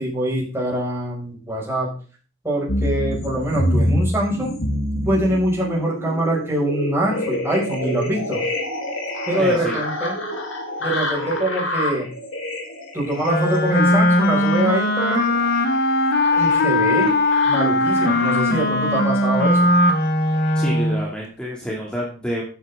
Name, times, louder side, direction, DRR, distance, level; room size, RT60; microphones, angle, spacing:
voice 1, 0.0-1.9 2.4-4.6 5.0-8.4 9.3-10.2 10.8-12.1 12.9-15.4 16.4-17.2 17.5-19.7, right 1 dB, 15° right, -4 dB, 6.1 m, -24 dB
sound 1, 2.7-18.6 19.2-19.9 20.4-20.5, left 1 dB, 75° left, 3.4 m, -27 dB
voice 2, 9.4-9.7 20.5-22.5, equal, 5° left, -4 dB, 2.6 m, -28 dB
Wind instrument woodwind instrument, 13.2-21.1, left 1 dB, 55° left, 1.8 m, -19 dB
14.0 x 9.4 x 3.8 m, 0.40 s
head